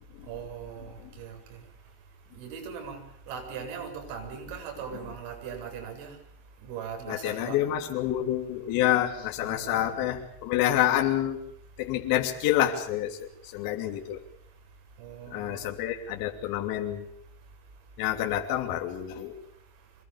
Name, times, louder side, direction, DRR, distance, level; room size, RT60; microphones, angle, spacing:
voice 1, 0.3-1.3 2.3-3.0 3.3-6.1 6.6-7.6 9.4-9.9 15.0-15.6, right 7 dB, 65° right, 5 dB, 7.7 m, -39 dB
voice 2, 7.1-11.4 11.8-14.2 15.3-17.1 18.0-19.3, left 12 dB, 55° left, 2 dB, 3.2 m, -28 dB
25.5 x 20.5 x 7.1 m, 0.72 s
cardioid pair, 150°, 42 cm